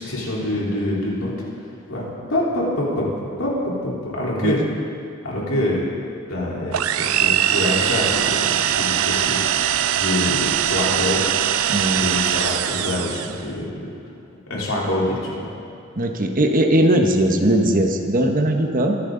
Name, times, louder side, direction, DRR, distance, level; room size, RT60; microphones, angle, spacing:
voice 1, 0.0-1.3 1.9-3.1 3.4-4.6 5.2-5.8 6.3-9.6 10.0-11.3 12.0-13.7 14.5-15.5, left 1 dB, 75° left, -5 dB, 3.7 m, -25 dB
sound 1, 6.7-13.4, right 10 dB, 80° right, 0.5 m, -21 dB
voice 2, 11.7-12.1 16.0-19.0, right 1 dB, 40° right, 3 dB, 1.1 m, -19 dB
23.0 x 10.5 x 3.9 m, 2.5 s
head